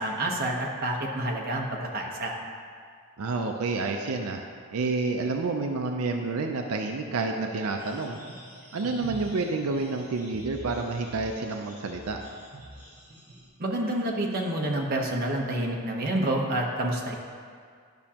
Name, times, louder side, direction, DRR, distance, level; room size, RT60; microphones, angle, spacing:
voice 1, 0.0-2.4 13.6-17.1, right 1 dB, 40° right, -1 dB, 0.9 m, -28 dB
voice 2, 3.2-4.4 4.7-8.2 8.7-12.2, right 3 dB, 80° right, 3 dB, 0.5 m, -29 dB
sound 1, 7.8-13.4, right 1 dB, 10° right, 1.9 m, -45 dB
10.5 x 6.1 x 2.9 m, 2.1 s
head